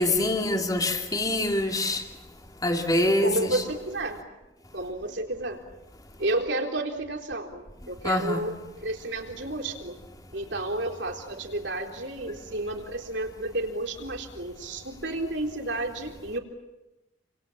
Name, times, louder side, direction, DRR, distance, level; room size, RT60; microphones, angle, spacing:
voice 1, 0.0-2.0 2.6-3.6 8.0-8.5, left 1 dB, 20° left, 2.8 m, -25 dB
voice 2, 3.2-4.2 4.7-5.6 6.2-10.0 10.3-16.4, right 2 dB, 60° right, 3.8 m, -31 dB
29.0 x 27.0 x 7.4 m
head